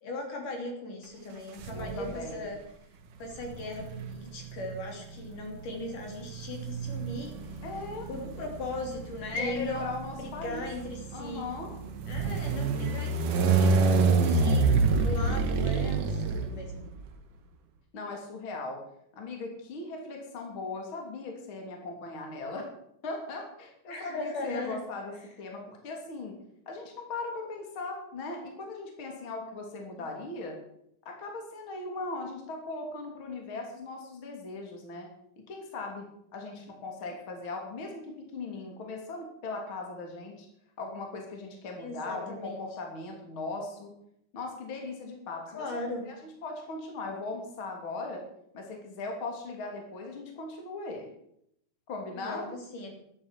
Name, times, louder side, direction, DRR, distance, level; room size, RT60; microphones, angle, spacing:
voice 1, 0.0-2.6 3.2-7.6 8.1-9.9 10.2-11.4 12.1-14.7 15.0-16.8 23.9-24.8 41.8-42.7 45.5-46.1 52.1-52.9, left 2 dB, 60° left, 2 dB, 4.6 m, -38 dB
sound 1, 1.6-2.3 3.4-17.1, right 4 dB, 65° right, 2.9 m, -28 dB
voice 2, 1.7-2.5 7.6-8.1 9.3-10.7 11.1-11.7 17.9-18.8 19.1-22.7 23.0-26.4 26.7-30.6 31.1-35.1 35.4-36.1 36.3-40.5 40.8-43.9 44.3-45.8 46.1-46.2 46.4-48.2 48.5-51.1 51.9-52.5, left 3 dB, 35° left, 2 dB, 3.6 m, -38 dB
12.5 x 11.5 x 8.4 m, 0.73 s
omnidirectional pair, 4.2 m